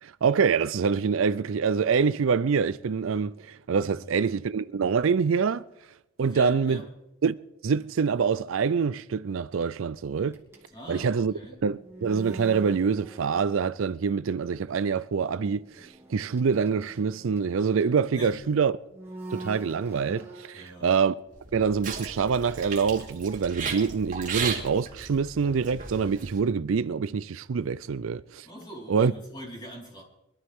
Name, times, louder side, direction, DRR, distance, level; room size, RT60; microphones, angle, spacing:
voice 1, 0.0-5.6 6.2-6.8 7.2-10.4 10.9-11.3 11.6-18.8 19.3-21.1 21.5-28.5 28.9-29.1, right 6 dB, 70° right, 0.4 m, -25 dB
voice 2, 3.9-4.2 6.2-6.9 10.7-11.6 18.1-18.4 20.5-21.0 28.4-30.0, equal, 20° left, 4.4 m, -43 dB
sound 1, 10.3-13.9 14.2-14.6 15.3-18.4 18.9-20.8 21.4-23.1, right 2 dB, 10° right, 2.9 m, -45 dB
sound 2, 21.3-26.4, right 5 dB, 35° right, 3.1 m, -35 dB
24.0 x 13.0 x 3.6 m
head